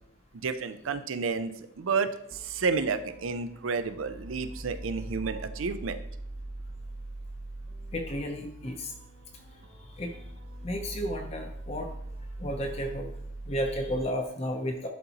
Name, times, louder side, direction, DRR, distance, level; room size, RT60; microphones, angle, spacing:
voice 1, 0.3-6.0, right 5 dB, 90° right, 10 dB, 0.5 m, -31 dB
sound 1, 2.3-14.0, right 1 dB, 50° right, 0.8 m, -42 dB
voice 2, 7.9-8.9 10.0-10.1 10.6-11.9 12.4-13.1 13.5-14.9, equal, 30° left, 3 dB, 0.6 m, -32 dB
11.0 x 4.0 x 2.9 m, 0.71 s
head